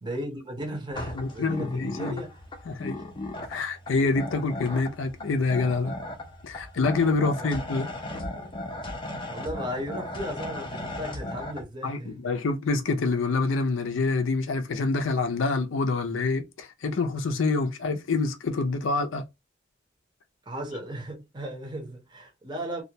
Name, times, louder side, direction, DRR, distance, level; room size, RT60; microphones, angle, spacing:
voice 1, 0.0-2.3 7.2-7.5 9.3-12.2 20.5-22.8, equal, 25° right, 0.6 m, -36 dB
sound 1, 0.9-11.6, left 1 dB, 25° left, 0.5 m, -37 dB
voice 2, 1.1-2.2 2.7-3.0 3.5-5.9 6.4-7.9 11.8-19.3, left 3 dB, 75° left, 0.5 m, -26 dB
2.3 x 2.1 x 2.7 m
head